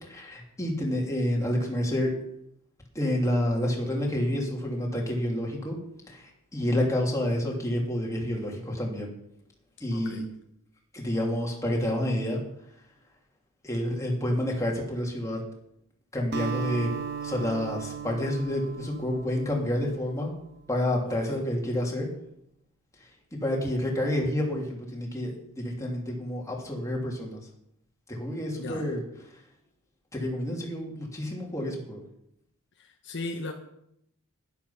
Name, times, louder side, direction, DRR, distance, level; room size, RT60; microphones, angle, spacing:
voice 1, 0.1-2.1 2.9-5.8 6.1-6.2 6.5-9.1 9.8-10.2 10.9-12.4 13.6-15.4 16.1-16.9 17.2-20.3 20.7-22.1 23.3-27.4 28.1-29.0 30.1-32.0, left 1 dB, 15° left, -1 dB, 3.0 m, -29 dB
voice 2, 9.9-10.2 21.1-21.4 28.6-28.9 32.8-33.5, left 2 dB, 55° left, 3 dB, 1.2 m, -37 dB
Acoustic guitar, 16.3-20.8, right 6 dB, 50° right, 1.0 m, -37 dB
11.5 x 11.0 x 5.8 m, 0.76 s
head